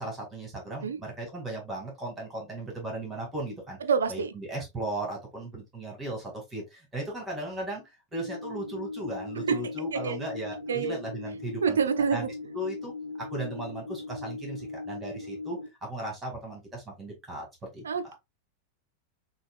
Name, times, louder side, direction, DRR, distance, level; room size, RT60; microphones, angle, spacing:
voice 1, 0.0-3.8 4.1-12.3 12.5-12.9 13.2-17.5 17.7-17.8, right 1 dB, 15° right, 2.0 m, -36 dB
voice 2, 3.8-4.3 9.4-10.2 10.7-11.0 11.6-12.3 17.8-18.2, right 6 dB, 70° right, 0.5 m, -27 dB
sound 1, 8.2-15.7, left 3 dB, 75° left, 1.0 m, -39 dB
6.4 x 2.3 x 2.4 m
figure-of-eight pair, 90°, 0 cm